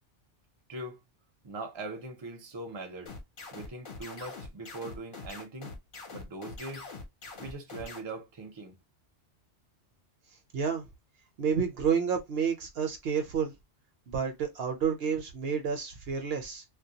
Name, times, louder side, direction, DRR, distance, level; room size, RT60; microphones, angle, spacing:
voice 1, 1.4-3.1 3.5-5.7 6.1-6.9 7.4-8.8, right 2 dB, 30° right, 0.5 m, -41 dB
sound 1, 3.1-8.0, left 3 dB, 50° left, 0.8 m, -43 dB
voice 2, 10.5-10.8 11.4-13.5 14.1-16.6, right 6 dB, 65° right, 0.8 m, -30 dB
2.2 x 2.1 x 2.6 m
omnidirectional pair, 1.2 m